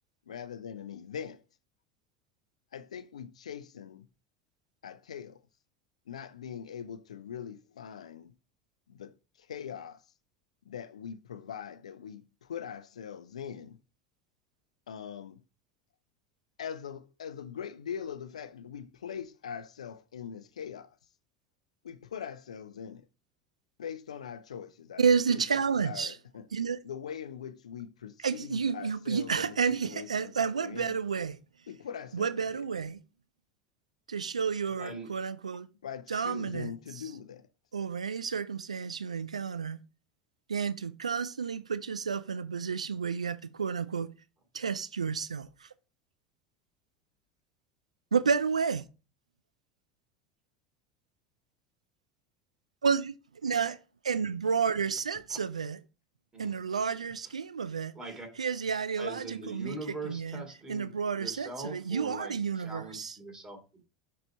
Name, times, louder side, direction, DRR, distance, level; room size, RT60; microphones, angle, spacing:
voice 1, 0.3-1.4 2.7-4.1 4.8-5.4 6.1-8.3 8.9-10.0 10.7-13.8 14.9-15.4 16.6-20.9 21.8-23.0 23.8-25.0 25.3-25.4 25.8-26.4 26.8-29.6 29.8-30.9 31.7-32.6 34.8-35.0 35.8-37.5, left 8 dB, 80° left, 0.5 m, -42 dB
voice 2, 25.0-26.2 26.5-26.8 28.2-31.4 32.1-33.0 34.1-35.7 36.1-37.0 37.7-39.8 40.5-44.1 44.5-45.7 48.1-48.8 52.8-53.2 53.4-53.8 54.0-55.8 56.4-57.9 58.4-60.4 60.7-63.2, right 6 dB, 90° right, 0.3 m, -31 dB
voice 3, 34.8-35.1 55.3-55.4 56.3-56.5 57.9-58.3 59.0-63.8, right 2 dB, 20° right, 2.9 m, -42 dB
6.5 x 4.2 x 4.3 m
hypercardioid pair, 80°, 3 cm